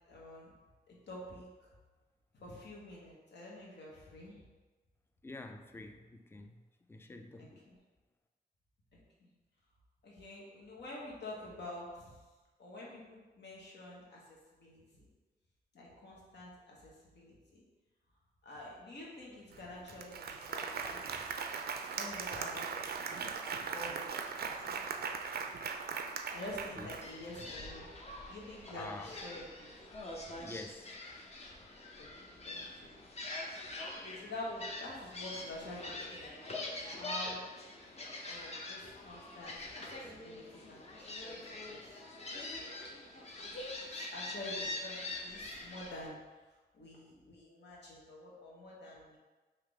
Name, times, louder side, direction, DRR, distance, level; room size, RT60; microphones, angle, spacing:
voice 1, 0.0-0.5 0.9-1.7 2.3-4.4 7.4-7.8 8.9-9.3 10.0-12.2 12.6-14.2 14.6-15.1 15.7-17.6 18.4-21.3 21.9-24.9 26.3-27.9 28.3-29.7 32.0-32.9 34.0-37.4 38.2-41.4 41.7-41.8 42.5-46.2 46.7-49.2, left 1 dB, 80° left, -4 dB, 1.2 m, -48 dB
voice 2, 5.2-6.6 6.9-7.6 26.8-26.9 28.7-29.2 30.4-31.0, left 2 dB, 15° left, 6 dB, 0.3 m, -47 dB
Applause, 19.5-19.6 19.9-27.4, right 5 dB, 65° right, 0.4 m, -39 dB
Gull seagull, 27.0-46.1, left 2 dB, 40° left, 0.7 m, -44 dB
3.6 x 2.8 x 4.7 m, 1.3 s
wide cardioid pair, 110°, 17 cm